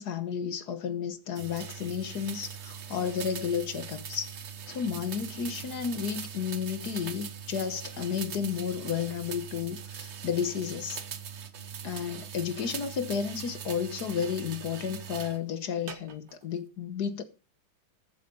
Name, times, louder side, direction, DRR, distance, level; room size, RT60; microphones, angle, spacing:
voice 1, 0.0-4.4 4.7-11.0 11.8-17.2, left 7 dB, 55° left, 1.4 m, -32 dB
sound 1, 1.3-15.4 15.9-16.4, right 7 dB, 45° right, 1.0 m, -41 dB
14.0 x 8.0 x 5.4 m
omnidirectional pair, 2.3 m